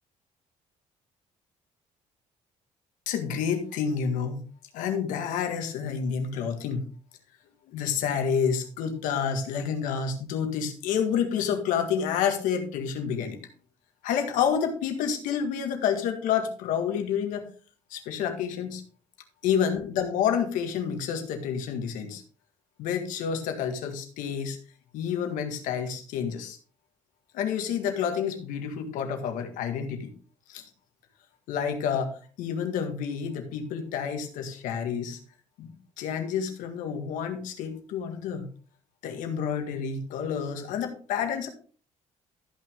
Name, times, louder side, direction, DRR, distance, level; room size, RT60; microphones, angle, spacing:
voice 1, 3.1-4.4 4.7-6.9 7.7-13.4 14.0-17.4 17.9-18.8 19.4-22.2 22.8-24.6 24.9-26.6 27.3-30.1 30.5-30.7 31.5-32.1 32.4-35.2 35.6-38.5 39.0-41.5, left 7 dB, 85° left, 6 dB, 1.8 m, -29 dB
13.5 x 6.0 x 3.6 m, 0.41 s
supercardioid pair, 80°, 13 cm